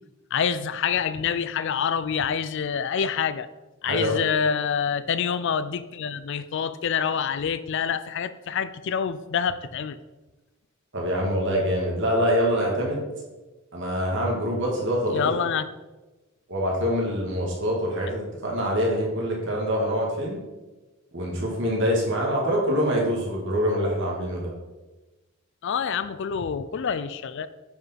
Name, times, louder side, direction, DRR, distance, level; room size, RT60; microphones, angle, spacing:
voice 1, 0.3-3.5 3.8-10.0 15.1-15.7 25.6-27.5, left 7 dB, 60° left, 14 dB, 0.4 m, -26 dB
voice 2, 3.8-4.2 10.9-13.0 13.7-15.2 16.5-20.4 21.1-24.5, equal, 60° right, -2 dB, 1.9 m, -25 dB
9.3 x 5.3 x 4.2 m, 1.1 s
head